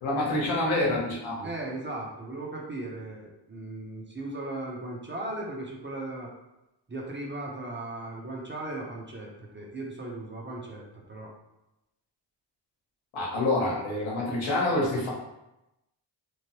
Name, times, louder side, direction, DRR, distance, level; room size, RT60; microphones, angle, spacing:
voice 1, 0.0-1.5 13.1-15.1, left 2 dB, 85° left, -4 dB, 1.0 m, -27 dB
voice 2, 1.4-6.3 6.9-11.3, right 2 dB, 25° right, -2 dB, 0.6 m, -37 dB
3.1 x 2.1 x 2.9 m, 0.93 s
cardioid pair, 70°, 47 cm